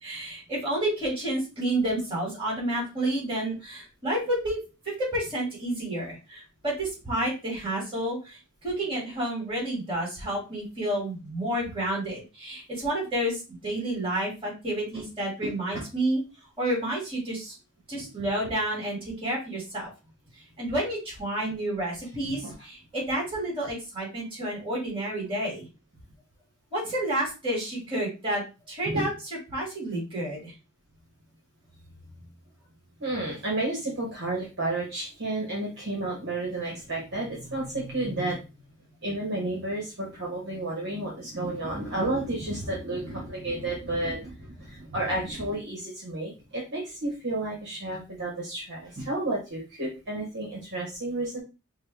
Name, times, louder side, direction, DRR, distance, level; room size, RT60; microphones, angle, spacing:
voice 1, 0.0-4.6 5.0-16.2 16.6-17.6 17.9-19.9 20.6-25.7 26.7-29.1 29.5-30.5, right 1 dB, 25° right, -3 dB, 2.4 m, -30 dB
voice 2, 15.4-15.8 22.2-22.5 28.8-29.0 32.1-32.3 33.0-38.4 39.0-51.4, right 2 dB, 50° right, -3 dB, 1.3 m, -31 dB
5.3 x 2.2 x 3.4 m, 0.29 s
head